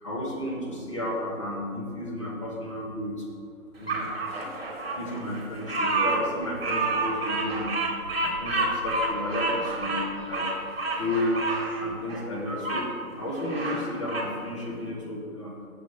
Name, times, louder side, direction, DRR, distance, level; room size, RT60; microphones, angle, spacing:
voice 1, 0.0-3.2 3.8-4.0 5.0-7.7 8.2-10.0 10.3-10.4 11.0-11.5 11.8-12.9 13.2-15.5, left 1 dB, 20° left, -4 dB, 1.0 m, -32 dB
Bird vocalization bird call bird song, 3.9-12.9 13.3-14.3, right 2 dB, 45° right, 1.4 m, -29 dB
7.7 x 6.6 x 4.0 m, 2.4 s
figure-of-eight pair, 150°, 44 cm